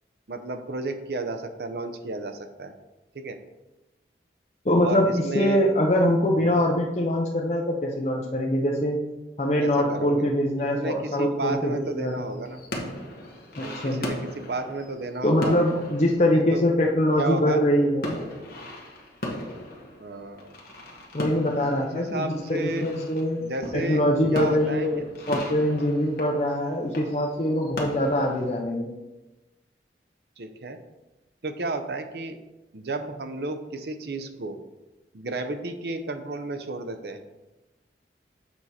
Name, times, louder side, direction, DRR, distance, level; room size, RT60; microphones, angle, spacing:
voice 1, 0.3-2.7 3.1-3.4 4.8-5.6 6.4-6.6 9.6-10.2 10.7-12.6 13.6-15.8 16.3-16.6 17.2-17.6 20.0-20.5 21.7-22.9 23.4-24.0 24.3-24.9 30.4-30.8 31.4-32.4 32.7-34.6 35.1-37.2, right 2 dB, 65° right, 8 dB, 0.6 m, -32 dB
voice 2, 4.6-9.0 9.4-12.2 13.5-14.0 15.2-18.2 21.1-23.4 23.7-28.9, left 1 dB, 40° left, -1 dB, 0.7 m, -23 dB
sound 1, 11.5-17.7 18.0-28.6, left 1 dB, 55° left, 1.2 m, -38 dB
7.1 x 4.6 x 4.2 m, 1.0 s
head